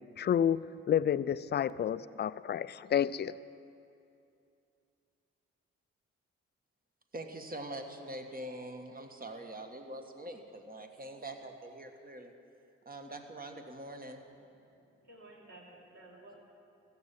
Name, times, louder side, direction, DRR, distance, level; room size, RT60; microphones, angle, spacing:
voice 1, 0.2-3.3, left 9 dB, 35° left, 17 dB, 0.4 m, -30 dB
voice 2, 7.1-12.3 12.9-14.2, right 1 dB, 25° right, 5 dB, 1.6 m, -44 dB
voice 3, 14.6-16.4, right 2 dB, 55° right, -2 dB, 3.1 m, -54 dB
14.5 x 7.1 x 9.0 m, 2.6 s
hypercardioid pair, 40°, 32 cm